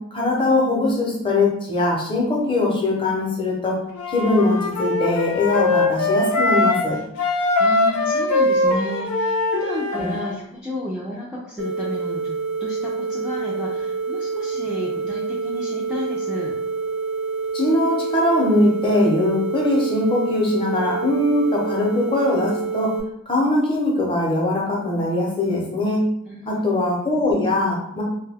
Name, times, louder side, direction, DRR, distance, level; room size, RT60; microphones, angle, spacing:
voice 1, 0.1-3.8 4.1-7.0 10.0-10.1 17.5-22.9 23.3-26.0 26.5-28.0, left 2 dB, 25° left, -3 dB, 0.7 m, -21 dB
Wind instrument woodwind instrument, 3.9-6.9 7.2-10.3, left 2 dB, 90° left, 0.5 m, -21 dB
voice 2, 7.2-16.5 26.3-26.8, equal, 5° right, -7 dB, 0.4 m, -32 dB
sound 1, 11.6-23.0, right 4 dB, 60° right, 0.7 m, -27 dB
2.7 x 2.2 x 3.4 m, 0.75 s
head